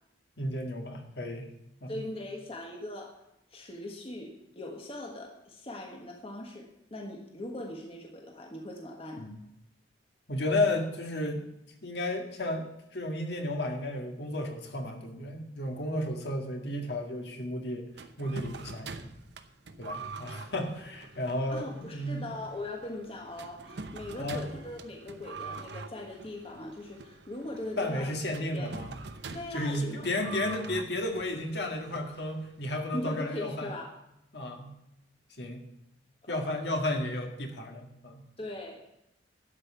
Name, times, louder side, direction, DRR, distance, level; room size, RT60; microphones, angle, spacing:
voice 1, 0.4-1.5 1.8-2.0 9.2-9.4 10.3-11.4 11.8-12.7 12.9-17.9 18.2-19.1 19.8-22.3 24.2-24.5 27.8-28.9 29.5-33.7 34.3-34.7 35.4-35.6 36.3-38.2, left 1 dB, 65° left, 2 dB, 1.9 m, -33 dB
voice 2, 1.9-3.2 3.5-9.3 21.5-28.1 28.5-28.7 29.3-30.1 32.9-34.0 36.2-36.6 38.4-38.9, left 1 dB, 30° left, 1 dB, 1.4 m, -40 dB
sound 1, 17.9-32.6, right 4 dB, 65° right, 0.8 m, -45 dB
12.0 x 5.6 x 8.0 m, 0.83 s
head